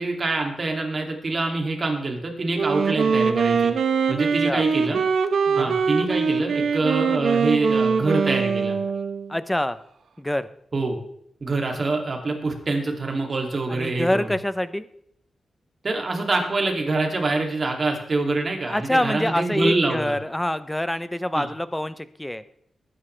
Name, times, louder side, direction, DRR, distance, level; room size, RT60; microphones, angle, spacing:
voice 1, 0.0-3.7 4.1-5.0 5.5-8.8 10.7-11.0 11.4-14.3 15.8-20.1 21.3-21.5, right 3 dB, 40° right, 2 dB, 2.6 m, -25 dB
Wind instrument woodwind instrument, 2.5-9.3, right 5 dB, 75° right, 1.0 m, -22 dB
voice 2, 9.3-9.8 10.2-10.5 13.7-14.9 18.6-22.4, left 1 dB, 10° left, 13 dB, 0.6 m, -25 dB
20.0 x 9.9 x 3.3 m, 0.69 s
wide cardioid pair, 135°, 0 cm